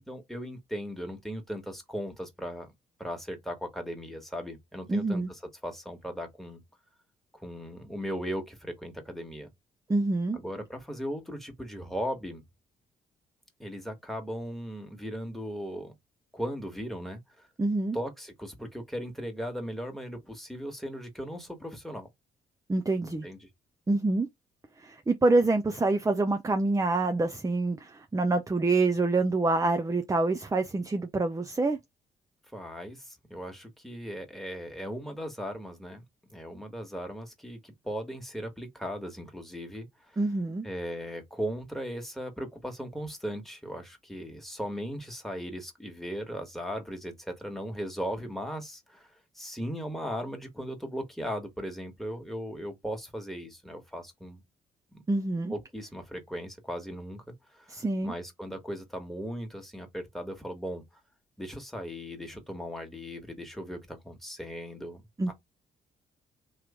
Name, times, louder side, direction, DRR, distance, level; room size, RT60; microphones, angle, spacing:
voice 1, 0.1-2.7 3.0-6.6 7.3-9.5 10.3-12.4 13.6-15.9 16.3-17.5 17.9-22.1 23.0-23.5 32.5-36.0 36.3-40.2 40.6-54.4 54.9-55.0 55.5-57.8 58.0-60.8 61.4-65.0 65.3-65.4, equal, ahead, 1.7 m, -37 dB
voice 2, 4.9-5.3 9.9-10.4 17.6-18.0 22.7-23.3 23.9-24.3 24.8-31.8 40.2-40.7 55.1-55.5 57.7-58.1 65.2-65.3, right 2 dB, 15° right, 0.7 m, -26 dB
3.2 x 3.0 x 3.7 m
hypercardioid pair, 45°, 20 cm